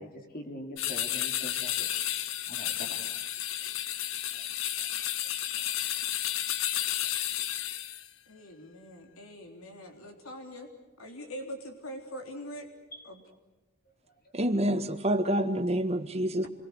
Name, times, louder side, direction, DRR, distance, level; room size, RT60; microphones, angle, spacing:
voice 1, 0.0-1.9 2.5-3.1 4.3-4.4 4.8-5.1 5.5-5.7 7.0-7.1 12.9-13.1, left 1 dB, 45° left, 3 dB, 3.4 m, -44 dB
sound 1, 0.8-8.1, left 12 dB, 65° left, 1.0 m, -32 dB
voice 2, 8.3-10.7 11.0-12.7 13.0-13.2, equal, 80° left, 3 dB, 3.6 m, -43 dB
voice 3, 14.3-16.5, right 1 dB, 30° right, 7 dB, 1.8 m, -27 dB
27.5 x 22.5 x 8.1 m, 1.1 s
head